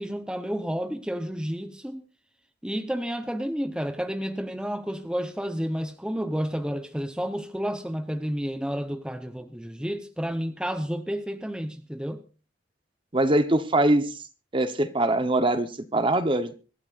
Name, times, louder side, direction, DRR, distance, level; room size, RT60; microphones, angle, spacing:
voice 1, 0.0-2.0 2.6-12.2, equal, 5° right, 0.9 m, -31 dB
voice 2, 13.1-14.1 14.5-16.6, right 1 dB, 30° right, 1.0 m, -23 dB
25.5 x 12.5 x 2.5 m
head